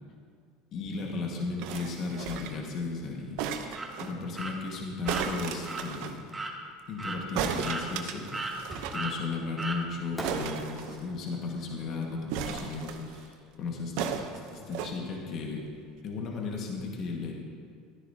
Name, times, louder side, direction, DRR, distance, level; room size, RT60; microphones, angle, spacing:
voice 1, 0.7-3.7 4.0-6.2 6.9-8.5 8.9-15.7 16.0-17.3, left 4 dB, 50° left, 0 dB, 1.6 m, -35 dB
sound 1, 1.6-2.7 3.4-4.1 5.1-6.2 7.4-9.1 9.3-9.4 9.6-9.8 10.2-11.4 12.3-13.2 14.0-14.9 15.7-15.8, right 7 dB, 70° right, 0.8 m, -35 dB
sound 2, 3.7-3.9 4.4-4.5 5.0-5.3 5.7-5.8 6.3-6.5 7.0-7.2 7.6-8.1 8.3-8.6 8.9-9.2 9.6-9.8, right 3 dB, 15° right, 1.2 m, -35 dB
Fireworks, 8.7-9.4 10.2-13.3, right 1 dB, 5° left, 2.1 m, -44 dB
13.0 x 10.0 x 2.8 m, 2.2 s
supercardioid pair, 95°, 0 cm